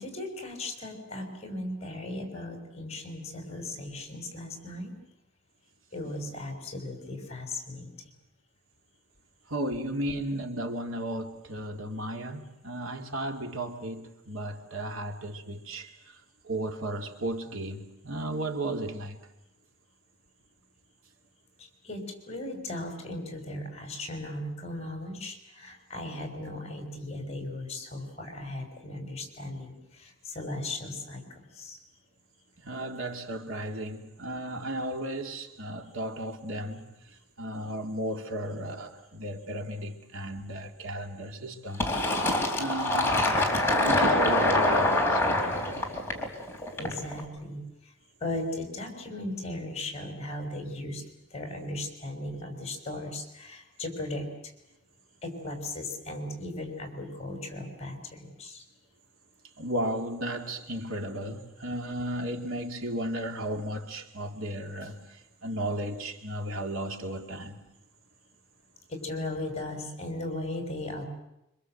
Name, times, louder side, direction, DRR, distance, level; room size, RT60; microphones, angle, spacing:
voice 1, 0.0-4.9 5.9-7.9 21.6-31.8 46.8-47.9 48.2-51.0 51.3-54.3 55.2-58.6 68.9-71.1, left 1 dB, 30° left, 5.9 m, -37 dB
voice 2, 9.5-15.9 16.4-19.2 32.6-36.9 37.4-41.9 42.6-43.3 43.8-45.4 59.6-65.0 65.4-67.6, right 1 dB, 80° right, 2.5 m, -34 dB
Fill (with liquid), 41.8-47.2, left 1 dB, 10° left, 4.0 m, -25 dB
26.0 x 25.5 x 7.9 m
head